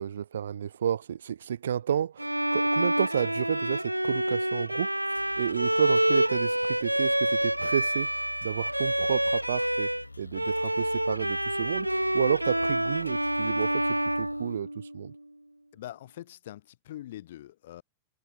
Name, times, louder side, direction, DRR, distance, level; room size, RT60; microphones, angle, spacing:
voice 1, 0.0-8.1 8.4-9.9 10.2-13.8 14.2-15.1, right 9 dB, 65° right, 0.9 m, -31 dB
Bowed string instrument, 2.2-10.1 10.3-15.1, right 1 dB, 90° right, 0.4 m, -28 dB
sound 1, 5.1-14.6, left 2 dB, 85° left, 4.2 m, -47 dB
voice 2, 15.7-17.8, left 13 dB, 55° left, 1.8 m, -43 dB
figure-of-eight pair, 90°, 0 cm